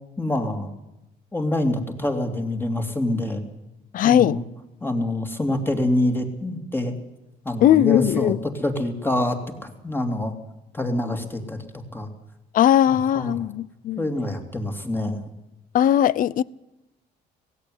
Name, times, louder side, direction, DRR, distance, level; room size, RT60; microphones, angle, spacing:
voice 1, 0.2-0.7 1.3-3.4 4.0-4.4 4.8-6.9 7.4-10.3 10.7-11.7 11.9-12.1 12.9-13.4 14.0-15.2, left 1 dB, 10° left, 3.0 m, -26 dB
voice 2, 3.9-4.4 7.6-8.4 12.5-14.0 15.7-16.4, left 11 dB, 55° left, 0.6 m, -19 dB
16.5 x 16.5 x 9.6 m
cardioid pair, 110°, 17 cm